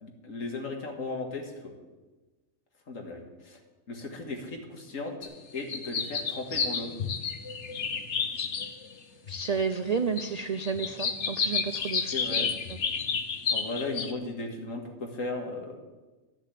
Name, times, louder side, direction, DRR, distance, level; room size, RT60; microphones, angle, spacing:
voice 1, 0.0-1.7 2.9-3.6 3.9-6.9 12.1-12.5 13.5-15.8, left 3 dB, 75° left, 3 dB, 2.1 m, -36 dB
sound 1, 5.2-5.3 5.6-9.0 9.3-9.4 9.9-10.2 10.6-14.1, left 6 dB, 60° left, 1.2 m, -31 dB
voice 2, 9.3-12.8, right 5 dB, 60° right, 9 dB, 0.4 m, -31 dB
12.0 x 7.2 x 8.3 m, 1.2 s
omnidirectional pair, 1.4 m